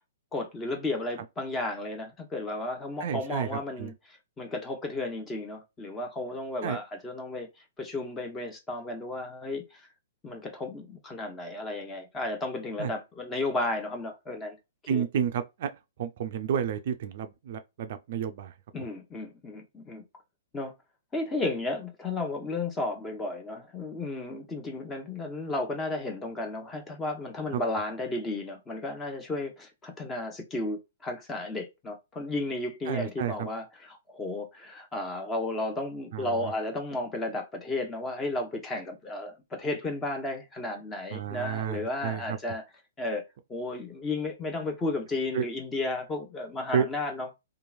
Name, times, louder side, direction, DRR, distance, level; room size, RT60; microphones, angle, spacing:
voice 1, 0.3-7.5 7.8-9.8 10.2-14.6 14.9-15.0 18.7-20.0 20.5-20.7 21.1-42.6 43.0-43.2 43.5-47.3, left 2 dB, 15° left, 0.8 m, -33 dB
voice 2, 3.0-3.5 3.8-3.9 6.6-6.8 12.8-12.9 14.9-15.7 16.0-18.5 27.5-27.6 32.9-33.3 36.1-36.3 41.1-42.4 45.3-45.4 46.7-46.8, right 8 dB, 55° right, 0.4 m, -30 dB
2.9 x 2.4 x 2.3 m
figure-of-eight pair, 120°, 0 cm